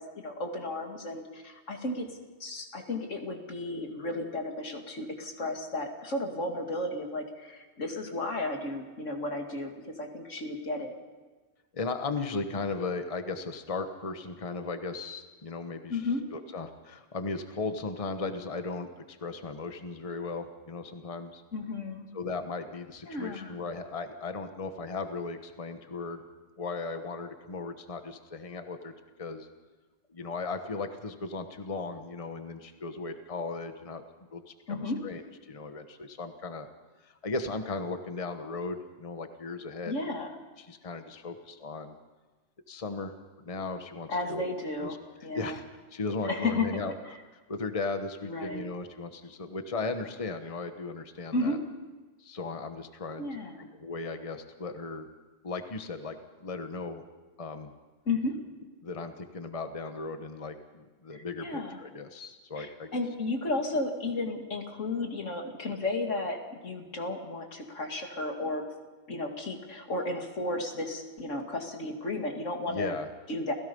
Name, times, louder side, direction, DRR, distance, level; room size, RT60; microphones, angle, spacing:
voice 1, 0.0-2.1 2.4-11.0 15.9-16.2 21.5-22.1 23.1-23.5 34.7-35.0 39.9-40.3 44.1-45.0 45.2-45.6 46.3-46.7 47.1-47.2 48.2-48.7 51.3-51.6 53.2-53.7 58.1-58.4 61.1-61.8 62.6-68.6 69.1-73.0 73.3-73.5, left 2 dB, 85° left, 3 dB, 2.7 m, -33 dB
voice 2, 11.7-16.0 16.3-21.4 22.1-26.2 26.6-28.9 29.2-29.5 30.1-34.0 34.3-34.4 34.7-35.2 35.5-36.7 37.0-39.9 40.6-41.9 42.7-44.4 44.8-45.0 45.3-45.6 45.9-46.9 47.3-51.6 52.2-53.2 53.6-55.1 55.4-57.0 57.4-57.7 58.8-63.0 72.7-73.1, left 3 dB, 30° left, 7 dB, 1.2 m, -36 dB
29.5 x 17.0 x 5.4 m, 1.3 s
omnidirectional pair, 1.3 m